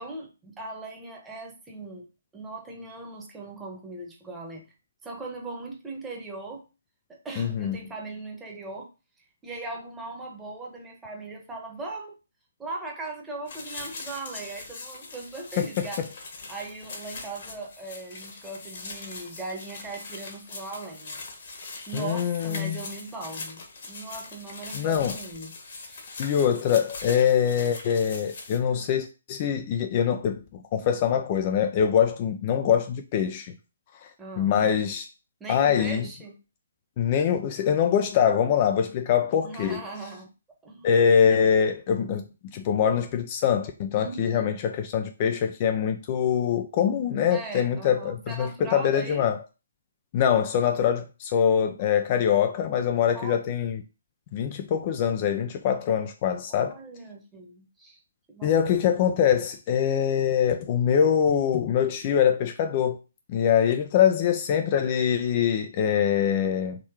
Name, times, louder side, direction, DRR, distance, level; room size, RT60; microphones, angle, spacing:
voice 1, 0.0-2.1 2.3-4.6 5.0-6.6 7.1-8.9 9.4-12.2 12.6-16.0 16.5-21.2 21.5-26.1 34.2-34.5 35.4-36.4 39.4-40.3 40.6-40.9 43.9-44.5 47.3-49.3 53.1-53.4 56.5-58.0 58.3-58.9, right 3 dB, 10° right, 1.2 m, -39 dB
voice 2, 7.4-7.8 15.6-16.1 21.9-22.8 24.7-25.1 26.2-30.4 30.7-33.5 34.4-35.1 35.5-36.1 37.0-39.8 40.8-42.2 42.5-49.4 50.1-53.8 54.3-56.8 58.4-63.0 63.3-66.8, left 8 dB, 35° left, 0.5 m, -24 dB
sound 1, 13.5-28.6, left 3 dB, 55° left, 1.5 m, -41 dB
3.7 x 3.1 x 4.6 m
figure-of-eight pair, 140°, 0 cm